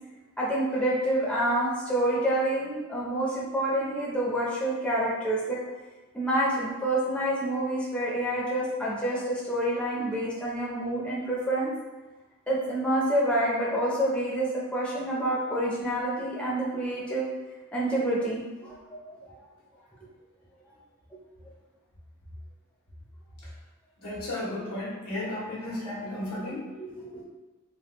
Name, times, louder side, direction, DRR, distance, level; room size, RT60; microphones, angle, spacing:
voice 1, 0.4-5.6 6.1-11.7 12.5-17.3 17.7-18.8 19.1-19.2 26.8-27.2, right 1 dB, 5° left, -7 dB, 0.6 m, -28 dB
voice 2, 24.0-26.6, left 1 dB, 85° left, -5 dB, 1.1 m, -34 dB
3.4 x 2.2 x 3.0 m, 1.2 s
head